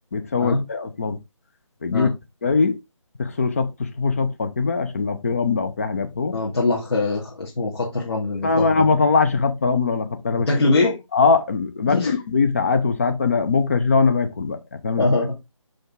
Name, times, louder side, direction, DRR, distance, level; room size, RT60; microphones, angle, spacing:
voice 1, 0.1-1.2 1.8-2.1 2.4-2.8 3.2-6.4 8.4-10.5 11.1-15.1, left 4 dB, 25° left, 0.8 m, -21 dB
voice 2, 6.3-8.9 10.4-11.0 11.9-12.1 15.0-15.4, left 3 dB, 55° left, 2.4 m, -22 dB
5.9 x 5.2 x 3.7 m
figure-of-eight pair, 155°, 17 cm